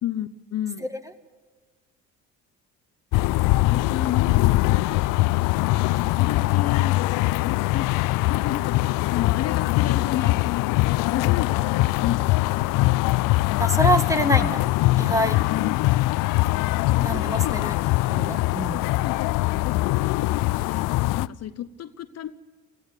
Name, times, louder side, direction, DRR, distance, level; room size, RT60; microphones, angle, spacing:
voice 1, 0.0-0.9 3.7-4.6 6.0-7.0 7.4-7.9 8.3-12.3 15.5-15.8 16.9-17.9 18.7-22.3, left 11 dB, 45° left, 12 dB, 0.9 m, -32 dB
sound 1, 3.1-21.3, left 19 dB, 65° left, 0.6 m, -22 dB
voice 2, 13.6-14.7 15.0-15.4 17.0-17.7 18.1-18.8, right 1 dB, 10° right, 9 dB, 2.2 m, -25 dB
17.0 x 15.5 x 10.0 m, 1.4 s
hypercardioid pair, 70°, 34 cm